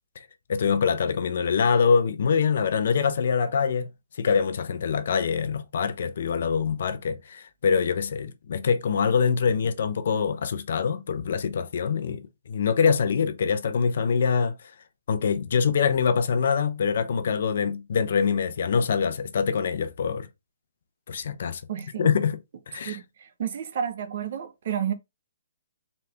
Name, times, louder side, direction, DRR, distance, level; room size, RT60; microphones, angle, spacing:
voice 1, 0.2-3.9 4.2-14.6 15.1-20.3 21.1-21.6 22.0-22.4 22.7-23.0, left 6 dB, 60° left, 0.7 m, -24 dB
voice 2, 21.7-22.1 22.8-22.9 23.2-24.9, right 9 dB, 50° right, 0.9 m, -30 dB
4.1 x 3.3 x 3.4 m
hypercardioid pair, 160°, 0 cm